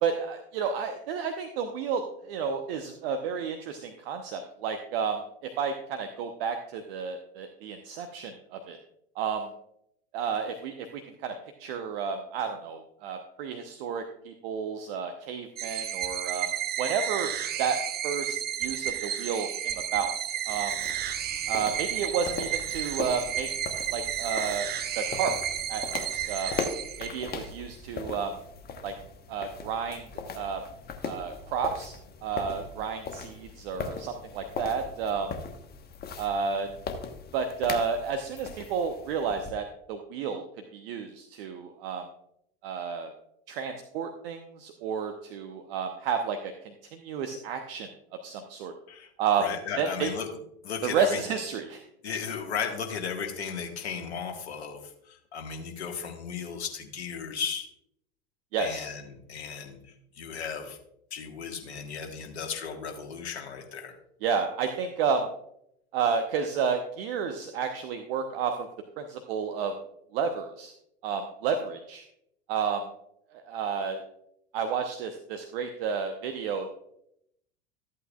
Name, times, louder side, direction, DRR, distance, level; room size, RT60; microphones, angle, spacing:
voice 1, 0.0-8.8 9.2-9.5 10.1-16.5 16.8-17.3 17.6-17.8 18.0-20.1 20.5-20.7 21.5-23.5 23.9-24.7 25.0-25.4 25.7-26.5 27.0-28.3 28.8-28.9 29.3-30.1 30.3-30.6 31.0-32.0 32.2-35.3 36.2-36.7 37.3-40.4 40.7-42.0 42.6-43.1 43.5-47.9 48.2-48.7 49.2-49.5 49.8-50.1 50.8-51.8 58.5-58.9 64.2-65.3 65.9-68.7 69.0-69.7 70.1-70.7 71.0-72.0 72.5-72.8 73.3-74.0 74.5-76.8, right 6 dB, 60° right, 6 dB, 1.0 m, -31 dB
sound 1, 15.6-27.5, right 10 dB, 30° right, 0.7 m, -32 dB
sound 2, 20.5-39.5, left 5 dB, 30° left, 1.2 m, -39 dB
voice 2, 49.4-50.3 50.6-51.2 52.0-57.7 58.6-59.8 60.2-60.8 61.1-63.9, left 6 dB, 75° left, 3 dB, 1.7 m, -35 dB
13.5 x 8.5 x 2.4 m, 0.75 s
hypercardioid pair, 85°, 33 cm